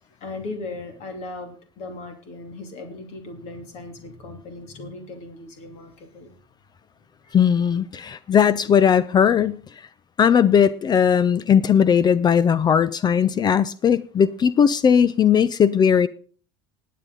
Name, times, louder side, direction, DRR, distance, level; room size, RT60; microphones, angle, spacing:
voice 1, 0.2-6.3 7.2-7.4, left 2 dB, 55° left, 2.7 m, -37 dB
voice 2, 7.3-9.6 10.2-16.1, left 7 dB, 30° left, 0.5 m, -18 dB
19.5 x 8.4 x 3.9 m
hypercardioid pair, 85°, 13 cm